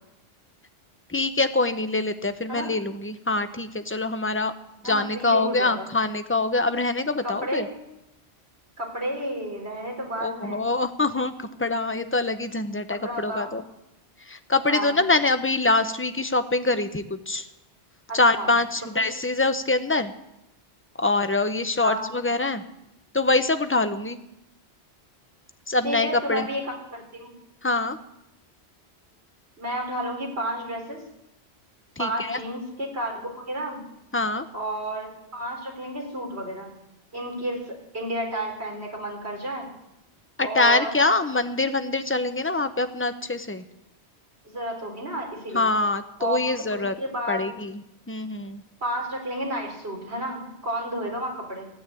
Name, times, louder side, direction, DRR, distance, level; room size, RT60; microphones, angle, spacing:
voice 1, 1.1-4.5 4.8-7.7 10.2-13.6 14.3-17.5 18.1-20.1 21.0-22.6 23.1-24.2 25.7-26.5 27.6-28.0 32.0-32.4 34.1-34.5 40.4-43.6 45.5-46.9 47.3-48.6, left 3 dB, 15° left, 9 dB, 0.7 m, -24 dB
voice 2, 4.8-5.9 7.2-7.7 8.8-10.7 13.0-13.5 14.7-15.0 18.1-18.5 21.8-22.1 25.8-27.3 29.6-31.0 32.0-33.8 34.5-36.7 37.1-39.7 40.4-41.1 44.4-45.6 46.2-47.4 48.8-51.7, right 1 dB, 75° right, 0 dB, 4.3 m, -31 dB
14.5 x 9.6 x 8.4 m, 0.86 s
omnidirectional pair, 1.1 m